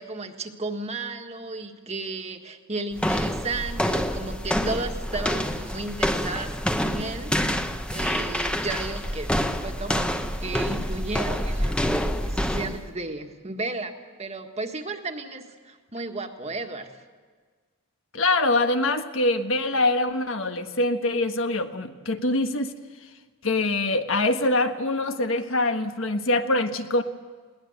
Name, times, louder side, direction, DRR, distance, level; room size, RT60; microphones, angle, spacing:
voice 1, 0.0-7.6 7.9-9.3 9.6-13.9 14.2-17.0, right 3 dB, 30° right, 5 dB, 1.6 m, -34 dB
sound 1, 3.0-12.9, equal, 5° left, 0.9 m, -27 dB
voice 2, 18.1-22.8 23.4-27.0, left 2 dB, 65° left, 6 dB, 1.5 m, -24 dB
21.5 x 18.5 x 8.0 m, 1.5 s
head